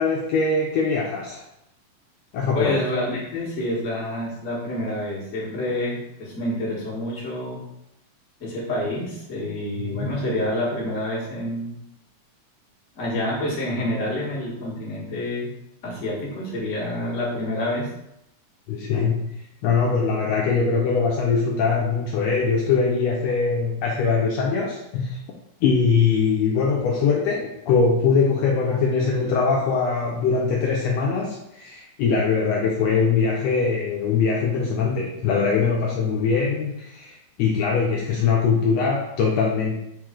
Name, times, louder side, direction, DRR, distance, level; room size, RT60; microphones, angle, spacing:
voice 1, 0.0-1.4 2.3-2.8 9.8-10.1 18.7-19.3 19.6-25.2 25.6-39.8, left 5 dB, 85° left, -1 dB, 1.5 m, -22 dB
voice 2, 2.5-7.6 8.4-11.7 12.9-15.5 15.8-17.9, left 1 dB, 50° left, -5 dB, 0.9 m, -28 dB
4.7 x 3.0 x 3.6 m, 0.83 s
omnidirectional pair, 3.4 m